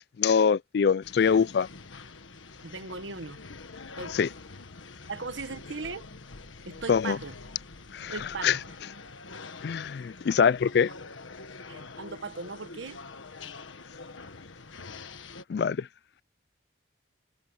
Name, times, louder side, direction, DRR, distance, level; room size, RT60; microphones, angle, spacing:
voice 1, 0.0-1.7 4.1-4.3 6.9-7.2 7.9-8.1 8.4-8.6 9.6-10.9 15.5-15.9, left 6 dB, 55° left, 0.3 m, -24 dB
sound 1, 1.0-15.4, left 4 dB, 85° left, 1.5 m, -45 dB
voice 2, 2.6-3.4 4.0-4.2 5.1-6.0 6.6-7.4 8.0-8.7 11.7-13.0, right 4 dB, 75° right, 1.3 m, -38 dB
head